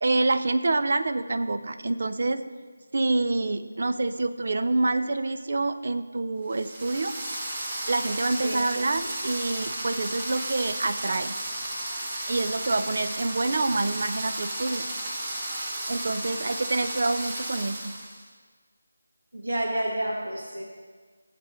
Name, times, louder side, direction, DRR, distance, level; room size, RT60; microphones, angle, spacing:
voice 1, 0.0-2.4 2.9-7.1 7.9-11.4 12.3-14.9 15.9-18.0, right 2 dB, 55° right, 10 dB, 0.6 m, -27 dB
sound 1, 6.5-18.2, right 1 dB, 30° right, 1.5 m, -34 dB
voice 2, 19.3-20.6, right 1 dB, 70° right, -1 dB, 1.5 m, -30 dB
17.5 x 7.5 x 3.1 m, 1.5 s
figure-of-eight pair, 165°, 0 cm